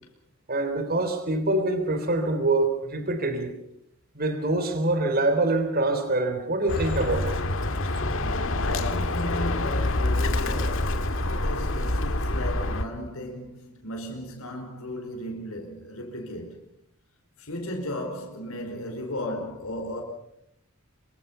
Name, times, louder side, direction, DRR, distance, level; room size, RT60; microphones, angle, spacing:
voice 1, 0.5-3.5 4.2-7.4, right 2 dB, 45° right, 3.4 m, -25 dB
Bird, 6.7-12.8, left 2 dB, 65° left, 1.9 m, -26 dB
voice 2, 8.6-16.6 17.4-20.0, left 1 dB, 80° left, 4.9 m, -35 dB
26.0 x 24.5 x 5.6 m
head